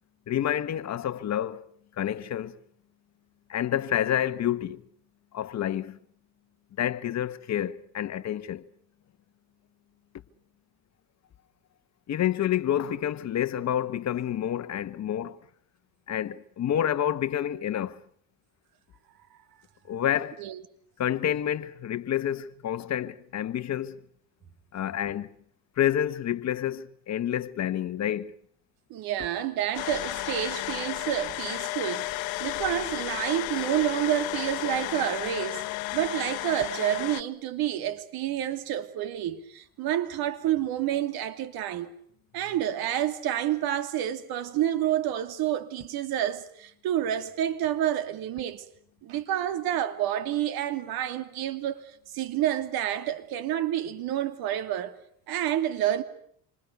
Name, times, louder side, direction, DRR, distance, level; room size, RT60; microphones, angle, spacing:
voice 1, 0.3-2.6 3.5-4.8 5.3-6.0 6.8-8.7 12.1-15.4 16.1-18.0 19.9-20.4 21.0-24.0 24.7-25.3 25.8-28.3, left 10 dB, 45° left, 1.4 m, -28 dB
voice 2, 28.9-35.6 35.9-41.9 42.3-48.6 49.0-55.0 55.3-56.0, right 11 dB, 75° right, 2.8 m, -29 dB
sound 1, 29.7-37.2, left 21 dB, 90° left, 1.0 m, -33 dB
27.5 x 25.0 x 6.8 m
cardioid pair, 110°, 37 cm